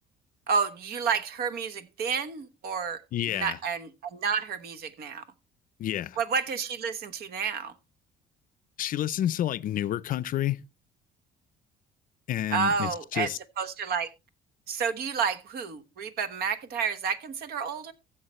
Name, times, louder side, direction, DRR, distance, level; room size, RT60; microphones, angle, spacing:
voice 1, 0.5-3.0 3.3-5.2 6.2-7.7 12.5-13.3 13.6-14.1 14.7-17.9, right 6 dB, 65° right, 1.2 m, -30 dB
voice 2, 3.1-3.6 5.8-6.2 8.8-10.6 12.3-13.4, left 12 dB, 55° left, 0.5 m, -29 dB
15.0 x 7.3 x 3.1 m
cardioid pair, 110°, 17 cm